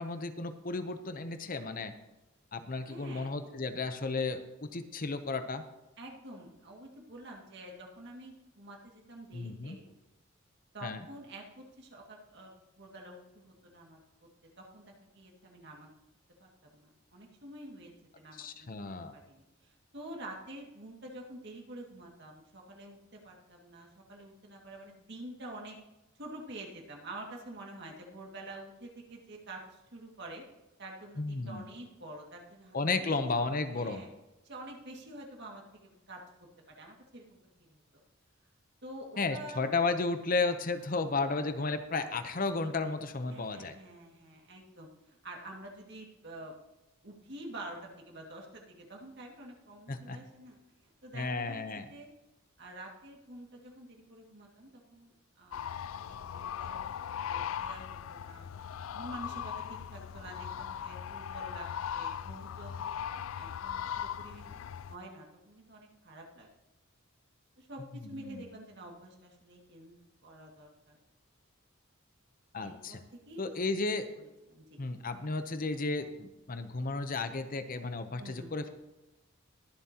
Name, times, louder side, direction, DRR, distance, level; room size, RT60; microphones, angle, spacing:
voice 1, 0.0-1.9 2.5-5.6 9.3-9.8 10.8-11.0 18.4-19.2 31.2-31.7 32.7-34.0 39.2-43.7 49.9-50.2 51.1-51.9 68.1-68.4 72.5-73.0 73.4-74.1 74.8-78.7, left 3 dB, 40° left, 9 dB, 0.8 m, -33 dB
voice 2, 2.9-3.3 6.0-9.9 10.7-14.3 14.6-15.9 16.4-17.9 18.2-18.7 19.1-25.8 26.2-30.4 30.8-34.1 34.4-36.2 36.7-37.8 38.8-39.6 43.3-46.5 47.0-50.6 51.0-52.1 52.6-58.5 58.9-61.7 61.9-62.9 63.4-64.6 64.9-66.5 67.6-71.0 72.6-73.0 73.3-73.5 74.5-74.8 78.2-78.6, right 1 dB, 55° right, 0 dB, 2.1 m, -48 dB
sound 1, 55.5-65.0, left 8 dB, 80° left, 0.4 m, -39 dB
21.5 x 7.5 x 2.9 m, 1.0 s
head